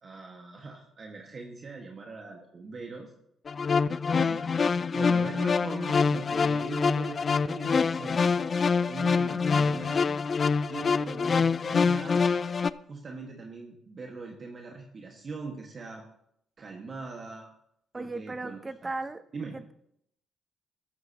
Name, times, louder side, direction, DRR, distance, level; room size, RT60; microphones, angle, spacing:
voice 1, 0.0-3.1 4.1-4.5 4.9-8.6 8.9-10.1 10.7-12.2 12.9-16.0 16.6-17.5 17.9-18.9 19.3-19.5, right 4 dB, 45° right, 1 dB, 1.7 m, -41 dB
sound 1, 3.5-12.7, left 5 dB, 40° left, 0.4 m, -25 dB
voice 2, 17.9-19.2 19.5-19.7, right 3 dB, 20° right, 13 dB, 0.7 m, -36 dB
13.5 x 13.0 x 3.0 m, 0.73 s
cardioid pair, 90°, 0 cm